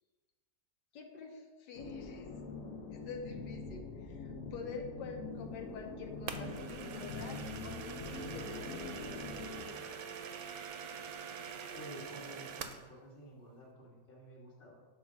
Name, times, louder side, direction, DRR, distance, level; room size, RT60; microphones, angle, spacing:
voice 1, 0.9-2.3 2.9-7.4 7.6-9.3, left 4 dB, 85° left, 2 dB, 1.5 m, -47 dB
sound 1, 1.7-9.7, left 4 dB, 60° left, 1.1 m, -44 dB
sound 2, 6.3-12.9, right 7 dB, 70° right, 1.0 m, -44 dB
voice 2, 11.7-14.9, equal, 35° left, -2 dB, 1.5 m, -51 dB
6.3 x 4.4 x 6.1 m, 1.4 s
omnidirectional pair, 1.8 m